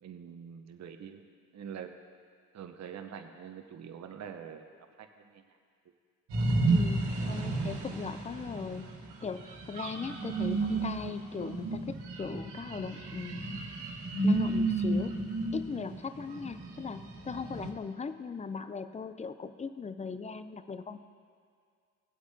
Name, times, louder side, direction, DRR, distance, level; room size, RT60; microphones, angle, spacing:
voice 1, 0.0-1.2 1.5-1.9 2.5-4.7 5.0-5.5, right 8 dB, 40° right, 6 dB, 0.9 m, -45 dB
sound 1, 6.3-17.7, right 2 dB, 65° right, 1.7 m, -32 dB
voice 2, 6.7-8.9 9.2-13.7 14.2-15.2 15.5-21.0, left 5 dB, 15° left, 12 dB, 0.4 m, -39 dB
17.5 x 7.9 x 2.8 m, 2.1 s
hypercardioid pair, 60°, 43 cm